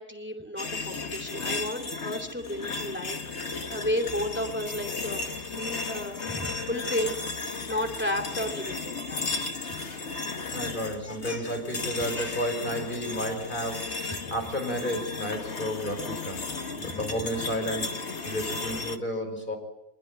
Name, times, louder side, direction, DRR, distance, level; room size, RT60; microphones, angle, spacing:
voice 1, 0.0-9.2 9.5-10.0 10.8-11.4 12.1-12.4 14.0-14.3 15.8-15.9 16.4-17.3 18.2-18.3, left 1 dB, 5° right, 5 dB, 2.6 m, -34 dB
sound 1, 0.6-19.0, left 3 dB, 50° left, 1.7 m, -35 dB
voice 2, 10.5-16.4 16.8-17.9 18.2-19.6, equal, 30° left, 3 dB, 6.2 m, -32 dB
24.0 x 21.5 x 9.2 m, 0.89 s
omnidirectional pair, 1.6 m